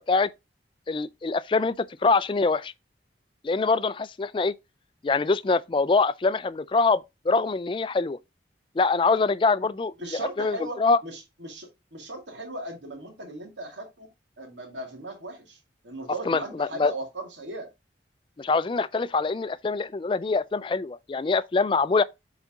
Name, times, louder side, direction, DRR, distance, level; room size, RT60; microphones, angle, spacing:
voice 1, 0.9-2.7 3.4-4.5 5.0-8.2 8.8-11.0 16.3-16.9 18.4-22.0, left 4 dB, 30° left, 0.3 m, -24 dB
voice 2, 10.0-14.1 14.4-15.6 15.8-17.7, right 1 dB, 85° right, 2.4 m, -37 dB
8.1 x 4.1 x 3.6 m
head